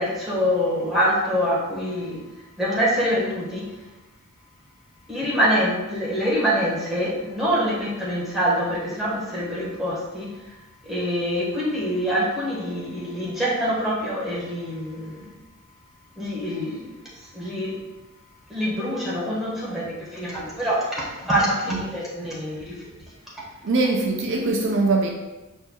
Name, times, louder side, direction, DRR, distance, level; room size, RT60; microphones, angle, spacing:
voice 1, 0.0-2.2 2.6-3.7 5.1-10.3 10.8-15.2 16.2-16.9 17.3-17.8 18.5-22.8, equal, ahead, -8 dB, 1.3 m, -25 dB
voice 2, 23.6-25.1, right 3 dB, 55° right, 1 dB, 0.5 m, -22 dB
5.3 x 4.4 x 2.2 m, 1.1 s
head